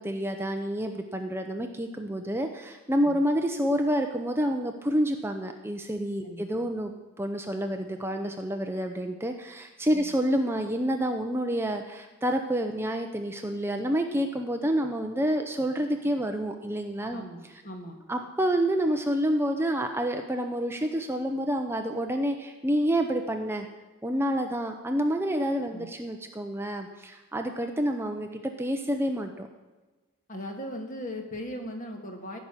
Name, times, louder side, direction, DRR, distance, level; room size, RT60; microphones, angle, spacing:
voice 1, 0.0-6.9 7.2-17.2 18.1-23.7 24.0-29.5, equal, 10° right, 5 dB, 0.6 m, -28 dB
voice 2, 6.2-6.7 9.9-10.1 17.1-18.0 25.7-25.9 30.3-32.4, equal, 35° left, 3 dB, 1.8 m, -39 dB
15.0 x 6.1 x 8.9 m, 1.2 s
head